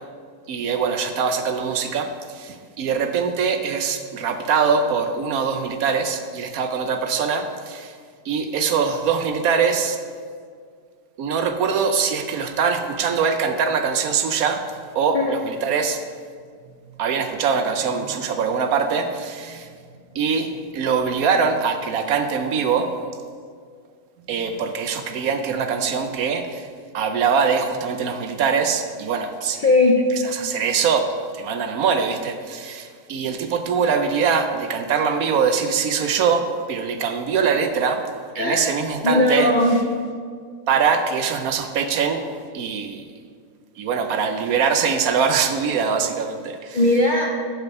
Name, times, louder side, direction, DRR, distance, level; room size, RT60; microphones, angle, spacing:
voice 1, 0.5-8.0 8.2-10.0 11.2-14.6 14.9-16.0 17.0-19.7 20.1-22.9 24.3-26.7 26.9-29.7 30.1-38.0 38.3-39.8 40.7-42.2 42.5-43.1 43.8-46.8, right 6 dB, 70° right, 7 dB, 1.0 m, -23 dB
voice 2, 29.6-30.0 38.4-38.6 39.0-39.8 46.7-47.3, left 2 dB, 55° left, 0 dB, 0.5 m, -18 dB
11.0 x 4.9 x 4.7 m, 2.1 s
omnidirectional pair, 1.7 m